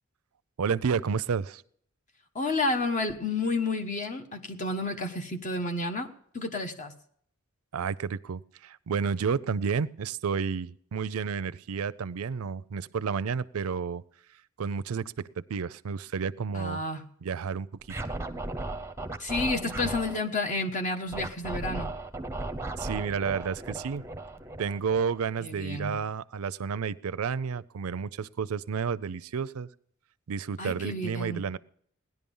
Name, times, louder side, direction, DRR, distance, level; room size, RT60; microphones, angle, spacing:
voice 1, 0.6-1.6 7.7-14.0 14.6-16.8 17.2-17.7 22.8-24.0 24.6-29.7 30.3-31.6, right 6 dB, 80° right, 18 dB, 0.5 m, -31 dB
voice 2, 2.3-6.9 16.5-17.1 19.2-21.9 25.4-26.0 30.6-31.5, left 2 dB, 35° left, 6 dB, 1.2 m, -31 dB
Scratching (performance technique), 17.8-20.2 21.1-25.4, right 2 dB, 10° right, 0.8 m, -36 dB
17.5 x 11.0 x 5.4 m, 0.65 s
head